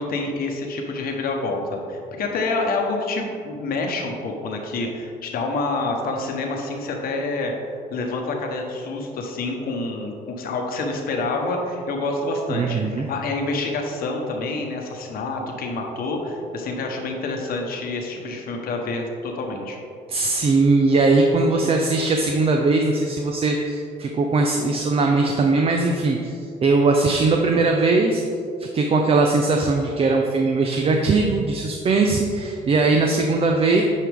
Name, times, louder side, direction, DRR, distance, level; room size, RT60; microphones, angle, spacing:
voice 1, 0.0-7.5 7.9-19.8, left 3 dB, 60° left, 2 dB, 1.1 m, -27 dB
voice 2, 12.5-13.1 20.1-28.2 28.6-33.8, right 3 dB, 35° right, 2 dB, 0.6 m, -20 dB
9.5 x 4.7 x 3.5 m, 2.4 s
cardioid pair, 110°, 17 cm